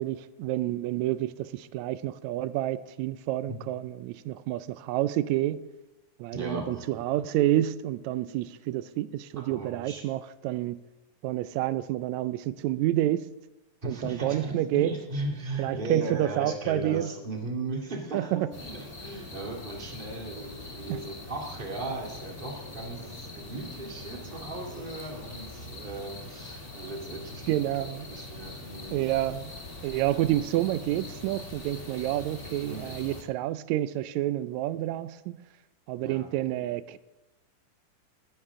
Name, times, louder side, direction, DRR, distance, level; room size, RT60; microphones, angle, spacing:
voice 1, 0.0-5.7 6.2-10.8 11.2-13.3 13.9-14.9 15.6-17.1 18.1-18.5 20.9-21.0 27.5-28.1 28.9-29.5 29.8-35.4 35.9-37.0, right 14 dB, 80° right, 15 dB, 1.7 m, -29 dB
voice 2, 6.3-6.9 9.5-10.0 13.8-27.7 28.1-29.0 30.1-30.2 32.7-32.9 36.0-36.3, right 2 dB, 20° right, 0 dB, 1.8 m, -37 dB
sound 1, 18.5-33.2, left 2 dB, 35° left, 0.9 m, -43 dB
20.5 x 10.5 x 3.7 m, 1.0 s
omnidirectional pair, 3.5 m